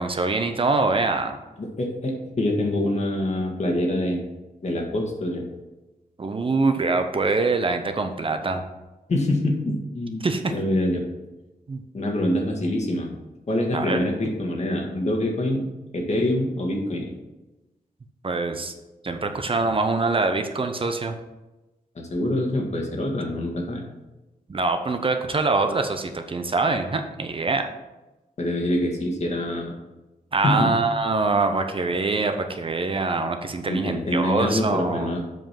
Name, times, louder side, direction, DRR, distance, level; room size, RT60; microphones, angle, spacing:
voice 1, 0.0-1.4 6.2-8.6 10.2-10.5 11.7-11.8 13.7-14.0 18.2-18.7 19.0-21.1 24.5-27.7 30.3-35.1, right 3 dB, 35° right, 6 dB, 0.8 m, -24 dB
voice 2, 1.6-4.2 4.6-5.5 9.1-10.2 10.5-11.0 11.9-13.1 13.5-15.7 15.9-17.1 22.1-23.8 28.4-29.7 30.4-30.7 33.7-35.2, left 1 dB, 50° left, 1 dB, 1.7 m, -25 dB
7.8 x 5.0 x 5.8 m, 1.1 s
wide cardioid pair, 105°, 15 cm